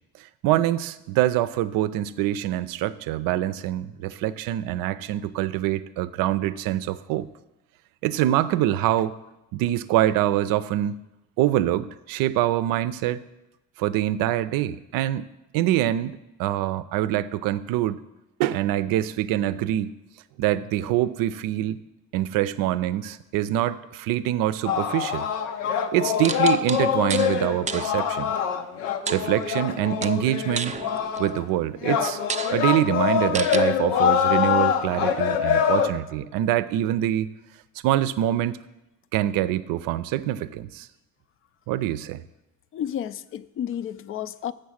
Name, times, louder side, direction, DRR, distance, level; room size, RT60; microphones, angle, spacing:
voice 1, 0.4-7.3 8.0-9.2 9.5-10.9 11.4-13.2 13.8-15.3 15.5-18.0 18.4-19.9 20.4-21.8 22.1-25.2 25.9-28.3 29.1-30.8 31.2-32.2 32.5-37.3 37.8-38.6 39.1-40.9 41.7-42.2, right 13 dB, 70° right, 15 dB, 0.5 m, -25 dB
sound 1, 24.7-31.4 31.8-35.9, left 8 dB, 90° left, 0.8 m, -24 dB
sound 2, 26.2-27.3 27.7-27.9 29.1-29.7 30.0-31.4 31.9-32.0 32.3-32.6 33.3-33.6, right 6 dB, 20° right, 0.5 m, -31 dB
voice 2, 42.7-44.5, left 10 dB, 40° left, 16 dB, 0.4 m, -31 dB
7.2 x 6.6 x 6.4 m, 0.97 s
supercardioid pair, 80°, 36 cm